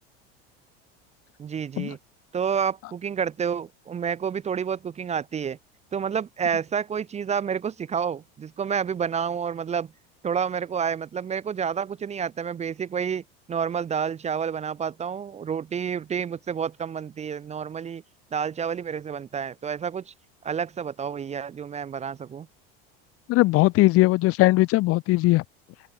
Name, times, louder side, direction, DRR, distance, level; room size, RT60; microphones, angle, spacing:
voice 1, 1.4-2.0 2.3-5.6 5.9-9.9 10.2-18.0 18.3-20.1 20.4-22.5, right 7 dB, 20° right, 0.6 m, -29 dB
voice 2, 23.3-25.4, left 19 dB, 50° left, 0.7 m, -19 dB
open air
supercardioid pair, 105°, 30 cm